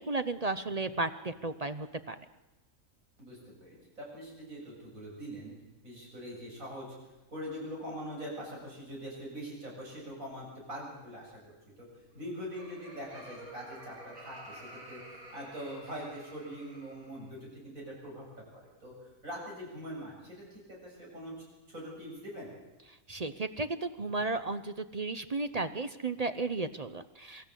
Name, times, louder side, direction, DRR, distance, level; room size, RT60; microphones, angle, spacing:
voice 1, 0.0-2.2 23.1-27.4, right 3 dB, 35° right, 11 dB, 0.7 m, -34 dB
voice 2, 3.2-5.6 5.8-6.9 7.3-11.9 12.1-15.0 15.3-18.3 18.5-21.3 21.7-22.5, equal, 70° right, -3 dB, 7.8 m, -43 dB
Laughter, 12.0-17.3, right 1 dB, 85° right, 4.0 m, -50 dB
24.5 x 13.5 x 8.3 m, 1.1 s
omnidirectional pair, 1.5 m